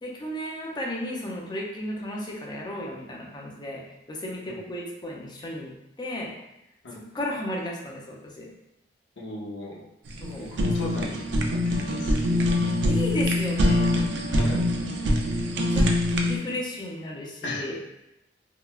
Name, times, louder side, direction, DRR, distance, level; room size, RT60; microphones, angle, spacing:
voice 1, 0.0-3.8 4.1-5.7 6.0-6.3 6.9-8.5 10.2-10.6 12.9-13.9 15.7-15.9 16.2-17.8, left 1 dB, 25° left, -2 dB, 0.5 m, -34 dB
voice 2, 9.2-9.8 10.4-11.2 11.5-12.6 14.3-14.6 17.4-17.7, left 2 dB, 75° left, -4 dB, 0.7 m, -37 dB
Fire, 10.1-16.4, left 1 dB, 70° right, 0.4 m, -24 dB
3.7 x 2.2 x 2.3 m, 0.87 s
head